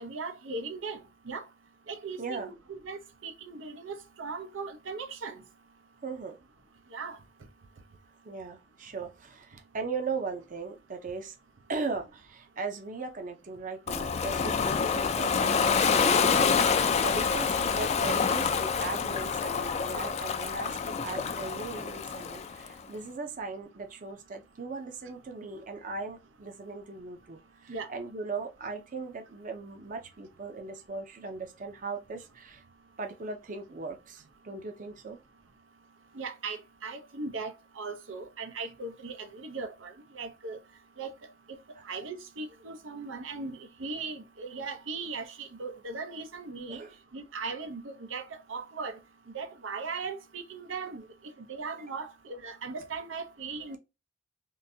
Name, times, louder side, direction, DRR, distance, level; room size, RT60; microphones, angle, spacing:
voice 1, 0.0-1.4 1.9-5.4 6.9-7.2 17.1-17.3 27.7-27.9 36.1-40.6 41.0-41.1 41.5-41.6 41.8-46.8 47.1-49.0 49.3-51.1 51.5-53.8, right 4 dB, 90° right, 0.7 m, -38 dB
voice 2, 2.2-2.5 6.0-6.4 8.2-11.3 11.7-32.6 33.0-35.2 41.7-41.8 46.7-46.9, right 4 dB, 45° right, 0.6 m, -38 dB
Ocean, 13.9-22.7, left 6 dB, 35° left, 0.4 m, -27 dB
3.7 x 2.6 x 2.6 m
head